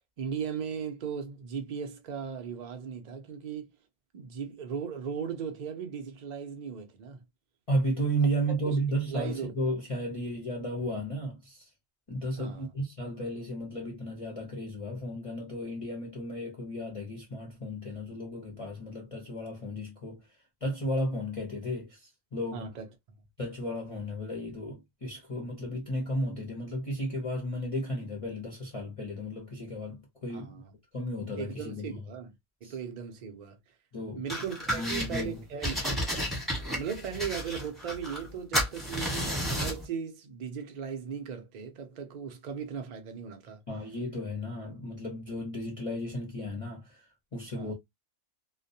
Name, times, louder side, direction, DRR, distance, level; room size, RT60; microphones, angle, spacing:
voice 1, 0.2-3.7 4.1-7.2 8.6-8.8 9.0-9.5 12.4-12.7 22.5-22.8 30.3-30.6 31.4-32.3 32.6-33.6 34.1-36.0 36.7-43.6 47.5-47.7, right 7 dB, 75° right, 0.4 m, -37 dB
voice 2, 7.7-11.6 12.1-20.2 20.6-22.7 23.4-30.6 30.9-32.0 32.6-32.7 33.9-34.2 34.7-35.4 43.7-47.7, equal, 40° left, 0.5 m, -34 dB
sound 1, 34.3-35.2 35.6-38.3 38.5-39.8, equal, ahead, 0.9 m, -32 dB
2.3 x 2.1 x 2.6 m
omnidirectional pair, 1.5 m